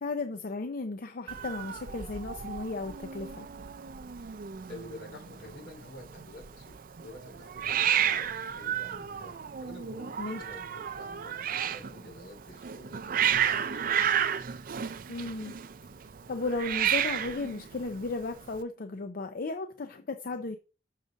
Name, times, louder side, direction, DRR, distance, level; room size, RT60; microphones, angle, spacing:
voice 1, 0.0-3.5 10.2-10.4 15.1-15.5 16.3-20.6, left 3 dB, 55° left, 0.5 m, -35 dB
Hiss, 1.3-18.6, right 9 dB, 50° right, 0.5 m, -32 dB
voice 2, 4.7-14.2, left 1 dB, 75° left, 3.1 m, -48 dB
6.6 x 3.9 x 6.2 m
head